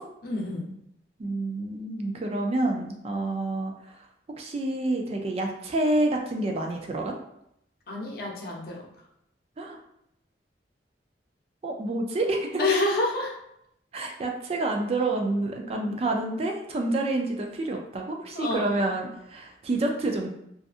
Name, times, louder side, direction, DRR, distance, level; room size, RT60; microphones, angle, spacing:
voice 1, 0.2-0.7 7.9-8.8 12.6-13.3 18.3-18.8, left 2 dB, 60° left, -2 dB, 0.6 m, -28 dB
voice 2, 1.2-3.7 4.4-7.1 9.6-9.8 11.6-12.6 13.9-20.3, right 2 dB, 35° right, 2 dB, 0.3 m, -28 dB
2.6 x 2.4 x 2.4 m, 0.78 s
head